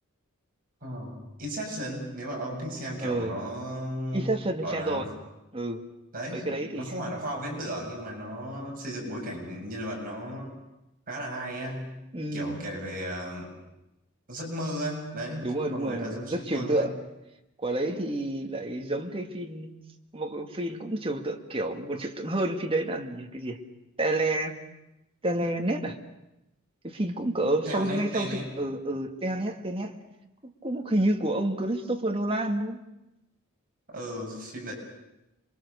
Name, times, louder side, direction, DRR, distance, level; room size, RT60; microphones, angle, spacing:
voice 1, 0.8-4.3 4.6-5.1 6.1-10.5 11.1-11.8 12.3-13.5 14.3-16.9 27.7-28.5 33.9-34.7, equal, 40° right, -1 dB, 7.7 m, -35 dB
voice 2, 3.0-3.4 4.1-5.1 5.5-5.8 6.3-6.9 12.1-12.6 15.4-17.0 17.6-19.7 20.1-23.6 24.0-24.6 25.2-26.0 26.8-29.9 30.4-32.8, right 1 dB, 25° right, 4 dB, 1.9 m, -29 dB
27.5 x 23.5 x 6.9 m, 0.91 s
head